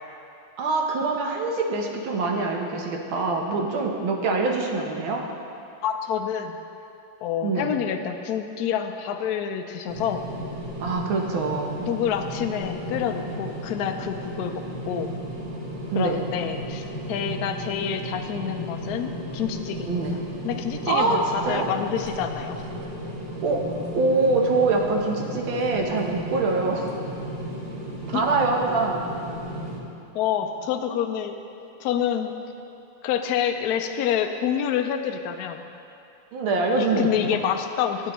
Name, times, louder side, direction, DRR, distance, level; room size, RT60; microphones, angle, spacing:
voice 1, 0.6-5.2 7.4-7.7 10.8-11.9 15.9-16.2 19.9-20.2 20.9-21.7 23.4-23.6 23.9-26.9 28.1-29.0 36.3-37.1, right 3 dB, 75° right, 1 dB, 1.7 m, -24 dB
voice 2, 5.8-6.6 7.2-10.2 11.9-15.1 16.0-20.0 20.4-22.6 28.1-28.2 30.1-31.3 31.8-32.3 33.0-35.6 36.8-38.1, left 9 dB, 85° left, 6 dB, 0.8 m, -27 dB
sound 1, 9.9-29.8, equal, 55° right, 1.6 m, -34 dB
12.5 x 8.8 x 3.0 m, 2.6 s
omnidirectional pair, 2.3 m